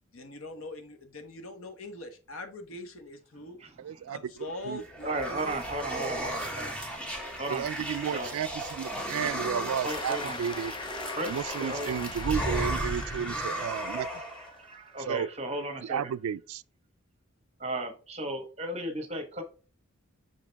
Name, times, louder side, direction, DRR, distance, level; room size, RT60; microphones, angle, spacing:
voice 1, 0.1-3.6 4.1-6.4, left 2 dB, 80° left, 1.1 m, -43 dB
voice 2, 3.8-4.2 4.7-4.8 7.5-10.7 11.3-14.1 15.0-15.3 15.8-16.6, right 8 dB, 85° right, 0.3 m, -32 dB
sound 1, 4.5-14.5, right 1 dB, 5° left, 1.0 m, -35 dB
voice 3, 5.0-6.8 7.4-7.7 8.1-8.4 9.8-10.4 11.2-12.1 12.9-13.4 13.7-16.1 17.6-19.4, right 1 dB, 30° right, 1.0 m, -36 dB
Cheering / Applause, 9.9-14.8, left 4 dB, 20° left, 0.4 m, -41 dB
5.9 x 5.0 x 3.4 m
head